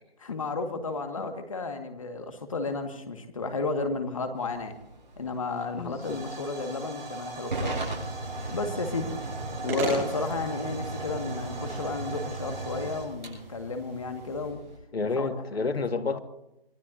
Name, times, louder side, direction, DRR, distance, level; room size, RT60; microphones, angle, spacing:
voice 1, 0.2-4.7 5.2-7.8 8.5-9.1 9.6-14.6 15.2-15.3 16.1-16.2, left 3 dB, 35° left, 1.9 m, -32 dB
Hiss / Fire / Tick, 4.4-14.8, right 2 dB, 50° right, 7.2 m, -36 dB
voice 2, 5.7-6.2 14.9-16.2, left 4 dB, 90° left, 1.9 m, -30 dB
sound 1, 7.5-14.5, right 2 dB, 10° right, 4.8 m, -40 dB
26.0 x 19.5 x 2.8 m
hypercardioid pair, 175°, 30 cm